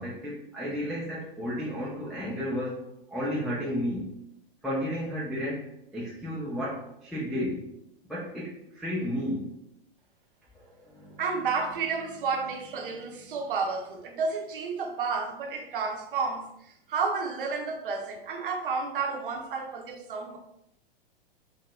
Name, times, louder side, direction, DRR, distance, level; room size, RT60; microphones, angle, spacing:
voice 1, 0.0-2.8 3.1-4.1 4.6-7.6 8.1-9.5 10.5-11.2, equal, ahead, 0.3 m, -33 dB
voice 2, 11.2-16.5 16.9-20.4, right 4 dB, 65° right, 0.6 m, -31 dB
4.1 x 2.0 x 2.2 m
figure-of-eight pair, 100°, 29 cm